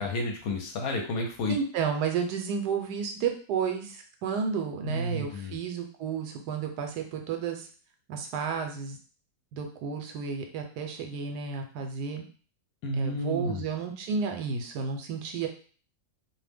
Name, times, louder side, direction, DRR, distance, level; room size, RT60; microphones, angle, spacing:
voice 1, 0.0-1.5 4.8-5.6 12.8-13.6, left 2 dB, 70° left, 2 dB, 1.0 m, -31 dB
voice 2, 1.5-7.7 8.1-9.0 9.5-12.2 13.0-15.5, right 6 dB, 80° right, 4 dB, 1.1 m, -32 dB
2.6 x 2.1 x 3.3 m, 0.41 s
omnidirectional pair, 1.7 m